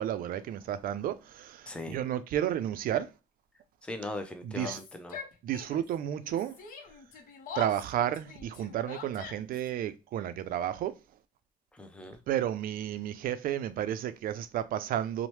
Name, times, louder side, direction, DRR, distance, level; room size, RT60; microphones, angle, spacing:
voice 1, 0.0-3.1 4.4-4.8 5.4-6.5 7.6-11.0 12.3-15.3, right 11 dB, 60° right, 0.4 m, -32 dB
voice 2, 1.7-2.0 3.8-5.2 11.7-12.2, left 2 dB, 5° left, 0.5 m, -39 dB
Yell, 4.5-5.9 6.2-9.7, left 6 dB, 55° left, 0.7 m, -44 dB
2.8 x 2.1 x 3.1 m
cardioid pair, 110°, 17 cm